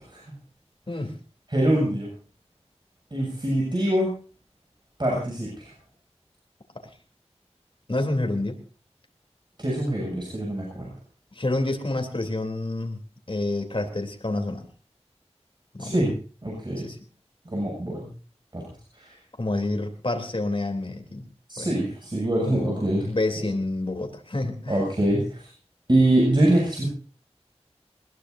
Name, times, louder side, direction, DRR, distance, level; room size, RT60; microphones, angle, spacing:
voice 1, 1.5-2.1 3.1-4.1 5.0-5.7 9.6-10.9 15.8-16.1 16.4-16.9 17.5-18.1 18.5-18.6 18.9-19.1 21.5-23.1 24.7-25.4 25.9-26.9, right 1 dB, 40° right, -3 dB, 7.7 m, -24 dB
voice 2, 7.9-8.6 11.3-13.0 13.3-14.6 15.7-15.9 16.8-17.0 19.4-21.2 21.6-21.7 22.4-24.8, left 2 dB, 50° left, 4 dB, 3.5 m, -28 dB
21.0 x 21.0 x 2.8 m, 0.38 s
wide cardioid pair, 55°, 11 cm